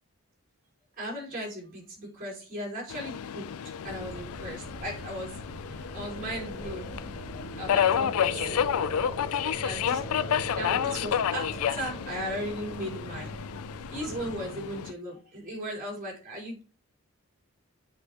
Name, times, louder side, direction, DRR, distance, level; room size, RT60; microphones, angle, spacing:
voice 1, 1.0-3.5 3.8-7.1 7.5-9.1 9.6-10.0 10.3-13.4 13.9-16.6, equal, 35° right, -3 dB, 4.3 m, -37 dB
Subway metro underground, 2.9-14.9, left 8 dB, 80° left, 0.4 m, -31 dB
sound 1, 3.8-14.4, equal, 45° left, 2.6 m, -40 dB
7.8 x 5.7 x 2.9 m, 0.35 s
head